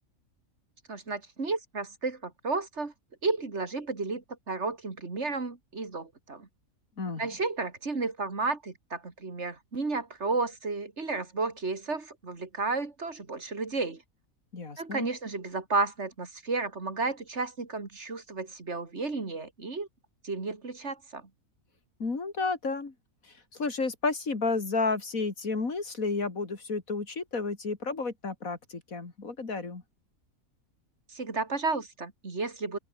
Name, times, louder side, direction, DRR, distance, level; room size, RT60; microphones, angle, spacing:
voice 1, 0.9-2.9 3.2-6.5 7.2-14.0 14.8-19.9 20.2-21.2 31.1-32.8, right 3 dB, 50° right, 3.0 m, -32 dB
voice 2, 7.0-7.3 14.5-15.1 22.0-22.9 23.2-29.8, left 4 dB, 70° left, 3.3 m, -32 dB
open air
omnidirectional pair, 1.5 m